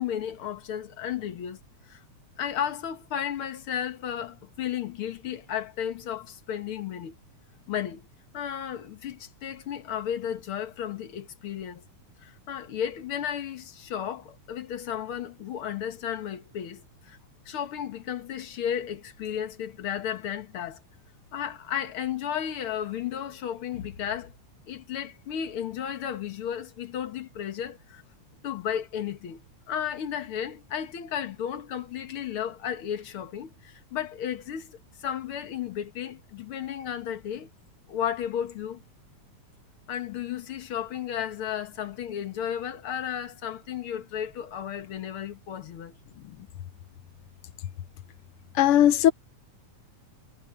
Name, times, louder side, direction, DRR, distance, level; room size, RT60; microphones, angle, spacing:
voice 1, 0.0-1.6 1.9-2.0 2.4-7.2 7.7-8.1 8.3-11.8 12.2-17.2 17.5-20.8 21.3-24.3 24.7-28.0 28.4-29.4 29.7-37.5 37.9-38.8 39.9-46.0, left 9 dB, 50° left, 2.0 m, -33 dB
voice 2, 48.5-49.1, left 11 dB, 70° left, 1.3 m, -18 dB
omnidirectional pair, 3.4 m